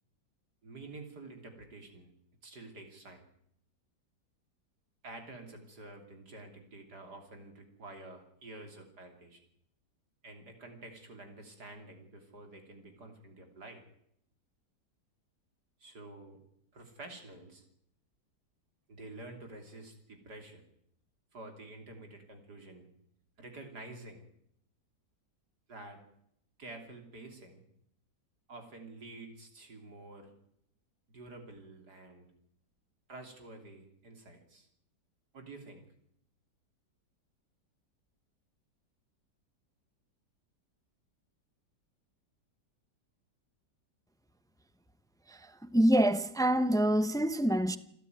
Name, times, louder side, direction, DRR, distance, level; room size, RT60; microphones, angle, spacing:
voice 1, 0.6-2.1 2.4-3.2 5.0-9.4 10.2-13.8 15.8-16.4 16.7-17.7 18.9-20.6 21.3-22.9 23.4-24.2 25.7-26.0 26.6-27.6 28.5-30.3 31.1-32.3 33.1-34.7 35.3-35.9, right 2 dB, 65° right, 3.7 m, -49 dB
voice 2, 45.3-47.8, right 1 dB, 5° left, 0.3 m, -26 dB
27.5 x 13.0 x 9.5 m
omnidirectional pair, 1.9 m